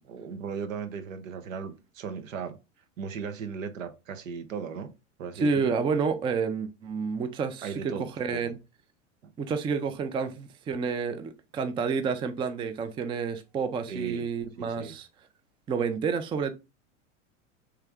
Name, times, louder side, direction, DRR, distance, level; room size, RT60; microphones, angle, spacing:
voice 1, 0.0-2.6 3.0-4.9 5.2-5.8 7.6-8.5 9.2-9.3 13.9-14.3 14.6-14.9, right 6 dB, 80° right, 0.8 m, -37 dB
voice 2, 5.4-8.6 9.4-15.1 15.7-16.5, right 5 dB, 15° right, 0.3 m, -29 dB
3.4 x 3.4 x 3.5 m
hypercardioid pair, 100°, 38 cm